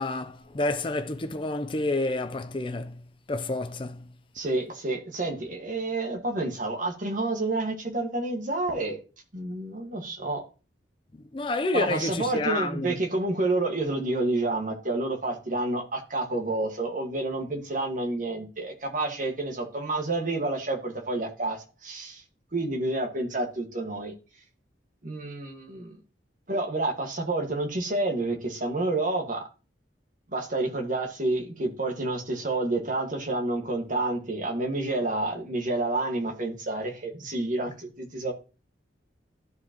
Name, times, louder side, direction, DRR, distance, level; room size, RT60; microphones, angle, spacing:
voice 1, 0.0-3.0 3.3-4.1 11.3-13.0, left 2 dB, 30° left, 0.5 m, -29 dB
voice 2, 4.3-9.0 9.3-10.4 11.7-22.2 22.5-24.1 25.0-26.0 26.5-29.4 30.3-38.3, right 2 dB, 45° right, 1.6 m, -29 dB
13.0 x 4.8 x 2.9 m
head